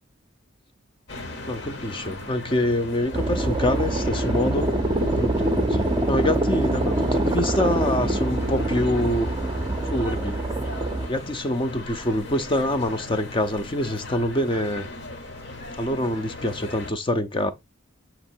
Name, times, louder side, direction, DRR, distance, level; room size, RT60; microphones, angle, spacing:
sound 1, 1.1-16.9, left 2 dB, 55° left, 1.0 m, -38 dB
voice 1, 1.5-4.7 5.0-9.3 9.8-10.4 11.1-14.9 15.8-17.5, left 1 dB, 25° left, 0.5 m, -26 dB
sound 2, 3.1-11.1, right 1 dB, 20° right, 0.5 m, -24 dB
7.4 x 3.0 x 4.4 m
head